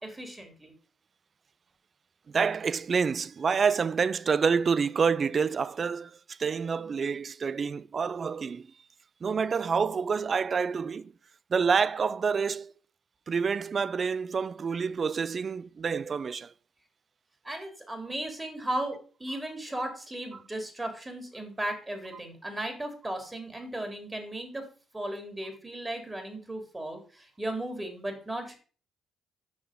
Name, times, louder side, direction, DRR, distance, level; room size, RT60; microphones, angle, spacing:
voice 1, 0.0-0.7 17.4-24.6 24.9-28.6, right 1 dB, 20° right, 2.9 m, -36 dB
voice 2, 2.3-8.7 9.2-11.1 11.5-12.7 13.3-16.5, right 5 dB, 50° right, 0.4 m, -28 dB
6.5 x 5.7 x 5.1 m
hypercardioid pair, 50°, 0 cm